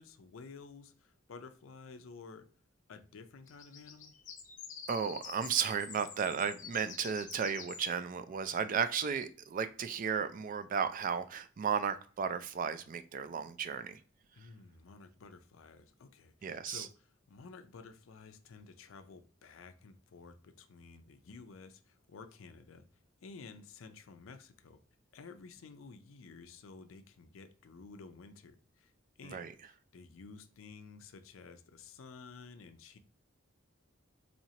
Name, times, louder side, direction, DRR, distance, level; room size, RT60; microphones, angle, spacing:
voice 1, 0.0-2.5 2.9-4.2 14.3-22.9 23.2-24.8 25.1-28.9 29.2-33.0, left 4 dB, 80° left, 0.5 m, -52 dB
sound 1, 3.5-7.9 8.5-8.6, left 6 dB, 40° left, 0.7 m, -48 dB
voice 2, 4.9-14.0 16.4-16.9 29.3-29.5, right 7 dB, 40° right, 0.3 m, -34 dB
4.3 x 2.8 x 2.8 m
head